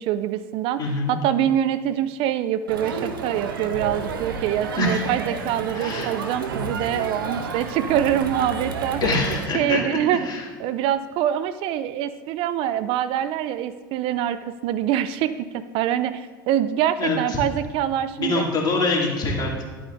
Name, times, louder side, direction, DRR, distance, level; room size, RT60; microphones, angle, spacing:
voice 1, 0.0-9.2 9.5-10.2 10.6-18.5, right 11 dB, 55° right, 13 dB, 0.4 m, -25 dB
voice 2, 0.8-1.2 4.8-5.0 5.7-6.1 9.0-10.0 10.2-10.4 17.0-17.4 18.2-19.7, left 3 dB, 40° left, -2 dB, 2.4 m, -24 dB
Crowd, 2.7-9.5, right 4 dB, 85° right, 0.8 m, -31 dB
12.0 x 8.5 x 2.6 m, 1.4 s
hypercardioid pair, 80°, 11 cm